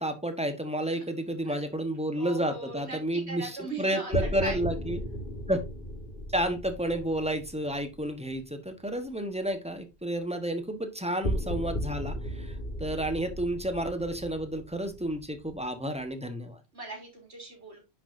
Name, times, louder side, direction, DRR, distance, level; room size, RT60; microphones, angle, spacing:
voice 1, 0.0-5.0 5.5-5.6 6.3-12.5 12.8-16.6, right 1 dB, 5° right, 7 dB, 1.2 m, -31 dB
voice 2, 2.2-4.6 16.7-17.8, right 2 dB, 75° right, 0 dB, 3.8 m, -40 dB
sound 1, 4.1-8.4 11.2-15.9, equal, 50° left, 2.0 m, -36 dB
10.0 x 5.9 x 2.7 m, 0.25 s
omnidirectional pair, 1.1 m